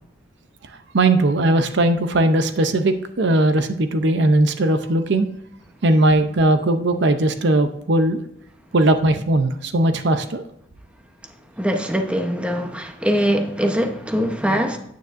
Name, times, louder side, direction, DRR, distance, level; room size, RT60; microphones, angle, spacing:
voice 1, 0.9-5.3 5.8-8.2 8.7-10.4, right 1 dB, 65° right, 0.6 m, -18 dB
voice 2, 11.6-14.8, equal, 5° right, 0.9 m, -22 dB
9.3 x 9.3 x 2.6 m
head